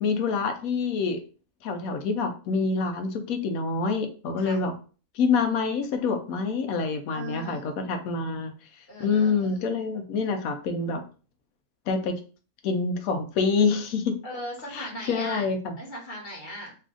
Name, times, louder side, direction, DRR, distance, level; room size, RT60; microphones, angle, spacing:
voice 1, 0.0-1.2 1.6-4.7 5.1-8.5 9.0-11.0 11.9-12.1 12.6-14.2 14.7-15.7, left 4 dB, 70° left, 7 dB, 1.0 m, -26 dB
voice 2, 7.1-8.0 8.9-9.6 14.2-15.5 15.8-16.8, equal, 35° left, -3 dB, 1.2 m, -39 dB
3.2 x 2.4 x 3.7 m, 0.37 s
omnidirectional pair, 1.6 m